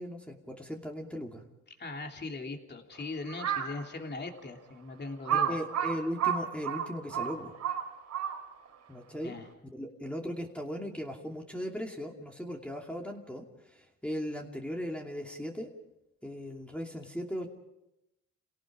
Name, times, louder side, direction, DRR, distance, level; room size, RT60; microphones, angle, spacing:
voice 1, 0.0-1.4 5.3-7.6 8.9-9.3 9.7-15.7 16.2-17.5, equal, 5° left, 0 dB, 2.7 m, -38 dB
voice 2, 1.8-5.6 9.2-9.5, left 3 dB, 35° left, 3 dB, 3.1 m, -39 dB
Crow, 3.3-3.8 4.4-4.5 5.3-8.7, right 8 dB, 65° right, 2.8 m, -31 dB
29.5 x 18.0 x 5.0 m, 0.89 s
cardioid pair, 90°, 30 cm